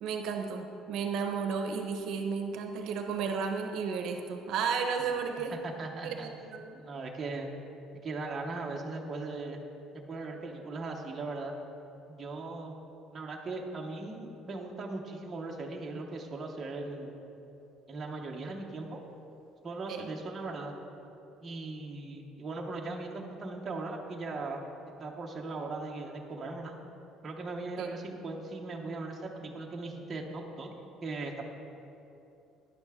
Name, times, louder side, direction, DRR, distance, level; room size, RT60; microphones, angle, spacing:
voice 1, 0.0-5.5 6.0-6.8 19.9-20.1 27.8-27.9, right 5 dB, 55° right, 4 dB, 0.8 m, -33 dB
voice 2, 5.6-6.3 6.8-7.5 8.0-9.6 10.1-11.5 12.1-12.7 13.1-17.1 17.9-19.0 19.6-20.8 21.4-24.6 25.0-26.8 27.2-30.7 31.0-31.4, right 3 dB, 20° right, -1 dB, 0.8 m, -38 dB
12.5 x 10.0 x 3.6 m, 2.8 s
cardioid pair, 175°, 0 cm